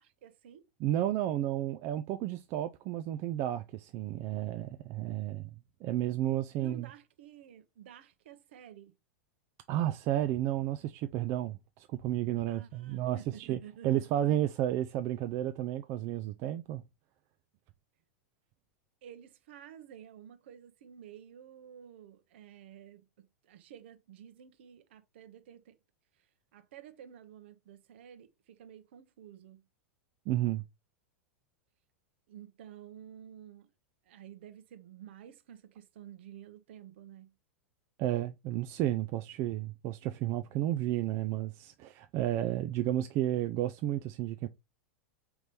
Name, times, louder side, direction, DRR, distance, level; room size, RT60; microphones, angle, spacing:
voice 1, 0.0-0.6 6.6-8.9 12.5-14.4 19.0-25.8 26.2-26.3 26.5-29.6 32.3-33.7 34.1-37.3, right 10 dB, 60° right, 0.8 m, -51 dB
voice 2, 0.8-5.5 5.8-6.9 9.7-16.8 30.3-30.6 38.0-44.5, right 13 dB, 40° right, 0.4 m, -32 dB
5.1 x 3.0 x 3.2 m
figure-of-eight pair, 95°, 7 cm